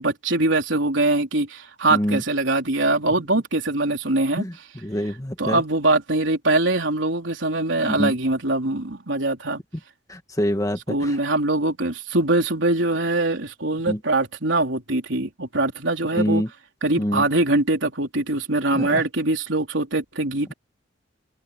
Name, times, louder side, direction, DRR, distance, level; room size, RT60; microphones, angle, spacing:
voice 1, 0.0-4.4 5.4-9.6 10.9-16.4 16.8-20.5, right 2 dB, 75° right, 3.9 m, -22 dB
voice 2, 1.9-2.2 4.4-4.5 4.8-5.6 7.9-8.1 10.1-10.8 13.9-14.0 16.1-16.5 17.0-17.2 18.7-19.0, equal, 20° left, 1.7 m, -25 dB
open air
head